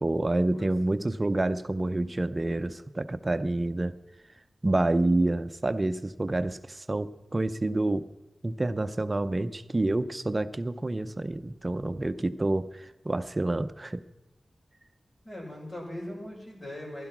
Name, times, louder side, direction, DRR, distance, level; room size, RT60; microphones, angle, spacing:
voice 1, 0.0-3.9 4.6-8.1 8.4-14.0, right 2 dB, 30° right, 12 dB, 0.7 m, -28 dB
voice 2, 15.2-17.1, left 1 dB, 45° left, -4 dB, 6.4 m, -40 dB
16.0 x 12.0 x 6.1 m, 0.97 s
wide cardioid pair, 95°, 0 cm